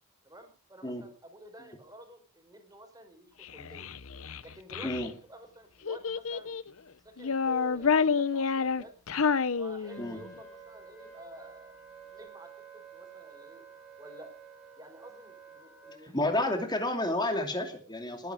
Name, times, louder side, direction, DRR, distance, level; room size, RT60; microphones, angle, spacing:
voice 1, 0.2-3.9 4.4-6.6 7.0-8.9 9.5-11.8 12.1-13.6 14.0-14.3 14.8-16.5, right 1 dB, 15° right, 6 dB, 4.8 m, -50 dB
Child speech kid speaking, 3.4-5.1 5.8-6.7 7.2-10.3, left 5 dB, 65° left, 0.8 m, -29 dB
Wind instrument woodwind instrument, 9.8-16.0, right 5 dB, ahead, 5.0 m, -51 dB
voice 2, 16.1-18.3, left 1 dB, 20° left, 5 dB, 2.7 m, -30 dB
20.0 x 10.5 x 4.9 m, 0.37 s
head